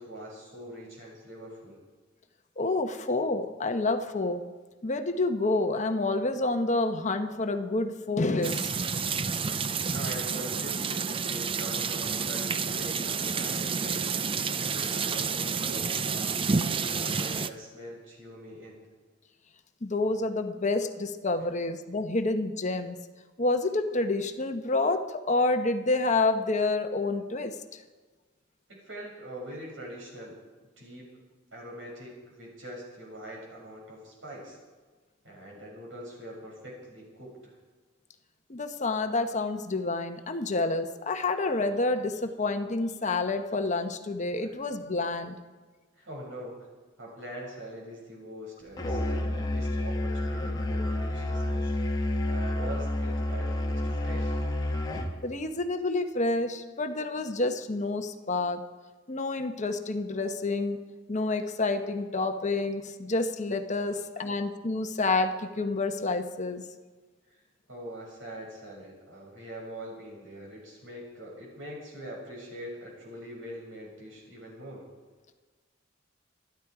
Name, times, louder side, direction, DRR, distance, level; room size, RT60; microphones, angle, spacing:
voice 1, 0.0-1.8 9.9-14.1 14.6-18.8 28.8-30.4 30.8-31.1 31.5-34.6 35.2-37.5 44.4-44.5 46.0-46.6 47.0-51.7 52.3-54.4 63.9-64.2 67.3-67.4 67.7-74.8, equal, 80° right, -2 dB, 6.7 m, -43 dB
voice 2, 2.6-4.4 4.8-8.8 19.8-23.0 23.4-27.8 38.5-45.4 55.2-58.6 59.1-60.8 61.1-66.6, left 2 dB, 40° left, 7 dB, 1.1 m, -28 dB
sound 1, 8.4-17.5, right 5 dB, 30° right, 0.6 m, -30 dB
Musical instrument, 48.8-55.1, left 1 dB, 20° left, 1.8 m, -29 dB
26.5 x 10.5 x 4.9 m, 1.3 s
head